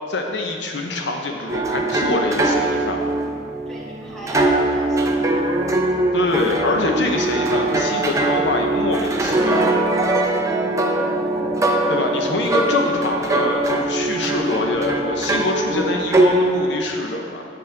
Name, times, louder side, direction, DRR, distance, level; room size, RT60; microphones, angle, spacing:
voice 1, 0.1-3.0 6.1-9.8 11.9-17.4, left 2 dB, 70° left, 2 dB, 0.7 m, -24 dB
sound 1, 1.5-16.7, right 2 dB, 15° right, 0.6 m, -21 dB
voice 2, 3.7-5.4 10.4-10.7, equal, 5° left, -7 dB, 2.1 m, -38 dB
10.5 x 8.4 x 3.3 m, 2.4 s
head